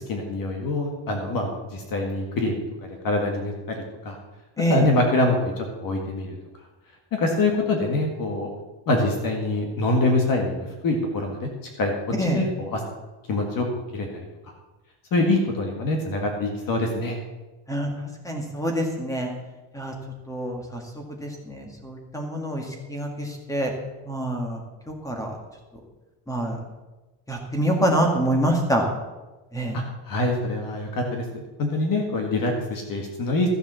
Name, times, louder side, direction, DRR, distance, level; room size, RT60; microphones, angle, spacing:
voice 1, 0.0-4.2 4.7-6.3 7.1-8.5 8.9-11.5 11.8-12.8 13.3-14.1 15.1-17.2 29.7-33.5, left 2 dB, 45° left, 2 dB, 1.8 m, -25 dB
voice 2, 17.7-19.3 19.7-19.9 20.3-23.7 24.1-24.6 24.9-25.3 26.3-26.6 27.3-28.9 29.5-29.8, right 1 dB, 5° left, 2 dB, 1.8 m, -26 dB
13.5 x 7.1 x 6.9 m, 1.1 s
cardioid pair, 170°, 48 cm